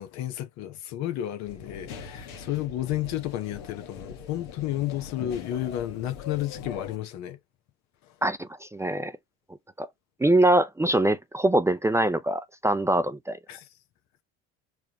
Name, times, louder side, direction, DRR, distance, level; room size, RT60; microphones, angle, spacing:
voice 1, 0.0-7.4 13.5-13.7, left 13 dB, 65° left, 0.9 m, -32 dB
sound 1, 1.4-7.0, left 6 dB, 80° left, 1.3 m, -41 dB
voice 2, 8.2-9.1 9.8-9.9 10.2-13.4, right 1 dB, 10° right, 0.5 m, -23 dB
4.8 x 2.3 x 2.9 m
supercardioid pair, 75°, 29 cm